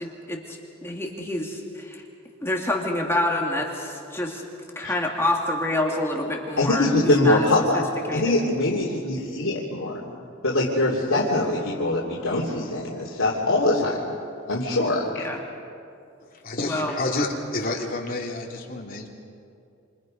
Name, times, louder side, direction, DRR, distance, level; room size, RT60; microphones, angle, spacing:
voice 1, 0.0-2.0 2.4-4.4 4.8-7.5 7.7-7.8 8.1-8.3 15.2-15.4 16.7-16.9, left 1 dB, 10° left, -1 dB, 2.4 m, -27 dB
voice 2, 6.6-7.8 8.1-10.1 10.4-14.1 14.5-15.2, left 2 dB, 75° left, -4 dB, 3.1 m, -23 dB
voice 3, 16.3-19.1, left 2 dB, 45° left, -1 dB, 3.1 m, -29 dB
29.0 x 27.5 x 5.3 m, 2.5 s
head